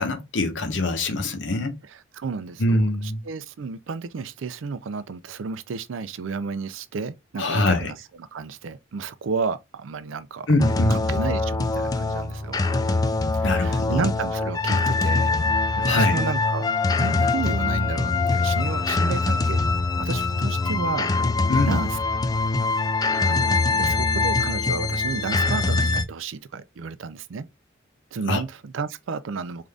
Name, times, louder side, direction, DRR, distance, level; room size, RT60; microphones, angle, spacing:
voice 1, 0.0-1.7 2.6-3.2 7.4-7.9 10.5-11.0 13.4-14.1 15.9-16.2 21.5-21.8 28.3-28.4, left 2 dB, 70° left, 0.9 m, -23 dB
voice 2, 2.2-2.8 3.3-8.0 8.3-10.5 10.9-12.6 13.3-15.3 15.8-19.6 20.0-21.1 21.7-22.0 22.7-22.8 23.2-27.5 28.1-29.7, right 5 dB, 90° right, 0.4 m, -32 dB
sound 1, 10.6-26.0, left 3 dB, 20° left, 0.3 m, -23 dB
3.7 x 2.5 x 3.3 m
head